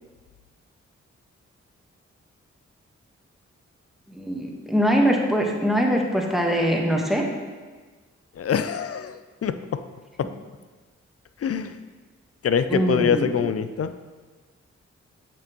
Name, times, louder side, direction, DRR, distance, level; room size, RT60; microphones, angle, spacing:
voice 1, 4.2-7.2 12.7-13.2, equal, ahead, 0 dB, 1.3 m, -22 dB
voice 2, 8.4-9.8 10.2-10.3 11.4-11.8 12.4-13.9, left 7 dB, 55° left, 11 dB, 0.5 m, -24 dB
8.4 x 5.9 x 3.1 m, 1.4 s
cardioid pair, 50°, 29 cm